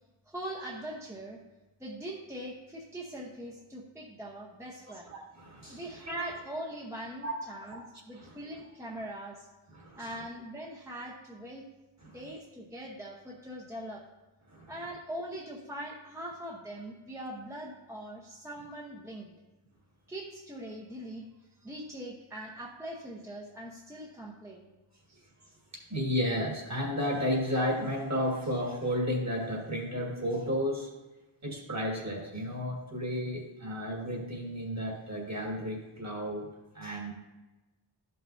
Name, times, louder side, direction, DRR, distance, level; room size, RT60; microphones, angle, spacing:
voice 1, 0.3-1.4 1.8-5.1 5.7-9.5 9.9-11.6 12.0-14.0 14.7-19.4 20.1-21.2 21.6-24.7 25.1-25.2, right 1 dB, 5° right, -3 dB, 0.8 m, -41 dB
voice 2, 4.9-6.2 7.2-7.3 7.6-7.8 8.1-8.4 9.7-10.1 12.0-12.2 14.5-14.7 25.7-30.9 31.4-36.5 36.7-37.1, equal, 35° right, -1 dB, 1.7 m, -33 dB
12.5 x 5.5 x 2.6 m, 1.1 s
wide cardioid pair, 110°, 49 cm